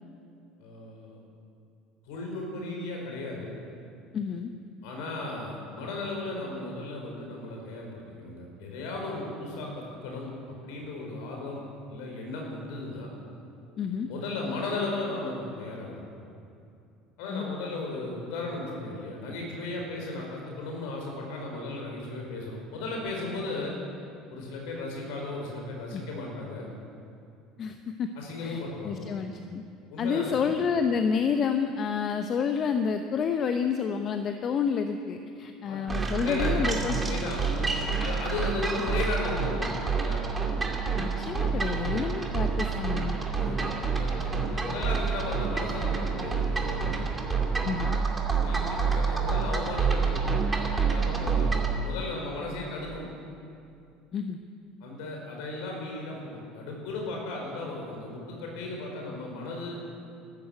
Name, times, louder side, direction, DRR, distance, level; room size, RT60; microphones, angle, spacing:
voice 1, 0.6-1.2 2.0-3.5 4.8-10.3 10.6-11.6 11.9-13.1 14.1-16.0 17.2-23.7 24.3-26.6 28.1-29.1 29.9-30.5 35.6-35.8 36.1-40.2 43.4-47.1 48.4-50.4 50.8-53.1 54.8-59.8, left 2 dB, 65° left, 0 dB, 4.9 m, -35 dB
voice 2, 4.1-4.5 13.8-14.1 17.3-17.6 25.9-26.0 27.6-28.1 28.4-29.6 30.0-37.0 41.0-43.2 47.6-47.9 54.1-54.4, left 6 dB, 45° left, 7 dB, 0.9 m, -29 dB
sound 1, 35.9-51.8, right 5 dB, 20° right, 2.7 m, -28 dB
14.0 x 13.0 x 8.0 m, 2.5 s
hypercardioid pair, 65°, 0 cm